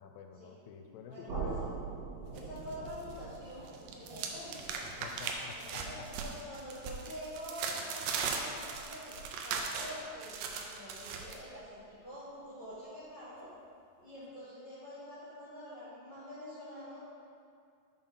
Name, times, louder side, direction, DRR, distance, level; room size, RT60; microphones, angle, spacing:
voice 1, 0.0-1.7 5.0-6.1, left 7 dB, 85° left, 5 dB, 2.4 m, -48 dB
voice 2, 1.1-1.7 2.3-4.9 5.5-9.1 9.4-13.5 14.0-17.0, left 1 dB, 40° left, -11 dB, 1.5 m, -46 dB
sound 1, 1.3-7.2, right 4 dB, 50° right, 2.1 m, -44 dB
sound 2, 2.4-3.2 3.5-11.4, right 5 dB, 85° right, 2.0 m, -39 dB
5.8 x 5.3 x 5.6 m, 2.3 s
omnidirectional pair, 4.7 m